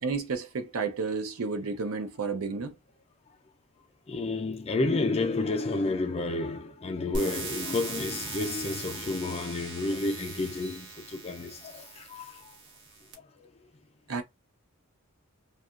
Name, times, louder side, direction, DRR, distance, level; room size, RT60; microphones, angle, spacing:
voice 1, 0.0-2.8 14.1-14.2, right 4 dB, 85° right, 0.6 m, -31 dB
voice 2, 4.1-12.3, left 2 dB, 30° left, 0.4 m, -30 dB
sound 1, 7.1-13.1, right 3 dB, 55° right, 0.8 m, -40 dB
2.8 x 2.3 x 2.4 m
head